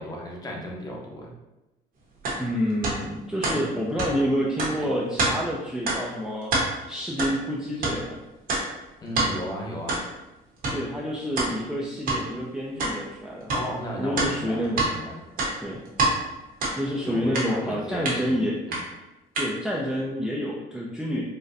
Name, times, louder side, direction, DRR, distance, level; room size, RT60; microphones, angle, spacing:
voice 1, 0.0-1.4 3.5-3.7 9.0-10.0 13.5-15.2 17.0-18.8, equal, 20° left, -2 dB, 0.8 m, -35 dB
sound 1, 2.2-2.4 2.8-3.0 3.4-3.6 4.0-4.1 4.6-4.7 5.2-5.3 5.9-6.0 6.4-6.7 7.2-7.3 7.8-8.0 8.5-8.6 9.2-9.3 9.9-10.0 10.6-10.8 11.4-11.5 12.1-12.2 12.8-12.9 13.5-13.6 14.2-14.9 15.3-16.1 16.6-16.8 17.3-17.5 18.1-18.2 18.7-18.8 19.4-19.5, right 2 dB, 55° right, 1.0 m, -25 dB
voice 2, 2.4-6.5 6.9-8.2 10.7-13.5 14.0-14.8 15.6-15.8 16.7-18.6 19.3-21.2, equal, 5° right, -4 dB, 0.4 m, -28 dB
4.0 x 2.1 x 2.6 m, 1.0 s
cardioid pair, 110°, 17 cm